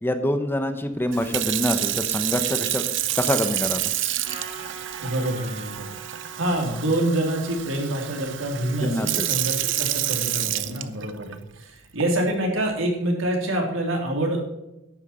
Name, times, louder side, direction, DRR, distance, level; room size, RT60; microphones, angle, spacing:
voice 1, 0.0-2.8 3.2-3.8 8.8-9.3, left 1 dB, 10° left, 8 dB, 0.9 m, -25 dB
Sink (filling or washing) / Fill (with liquid), 1.1-11.3 12.0-12.3, right 13 dB, 65° right, 0.8 m, -28 dB
Trumpet, 4.2-10.9, right 4 dB, 30° right, 2.5 m, -44 dB
voice 2, 5.0-5.9 6.3-14.5, right 1 dB, 85° right, 1 dB, 3.5 m, -26 dB
11.5 x 9.2 x 4.4 m, 0.92 s
head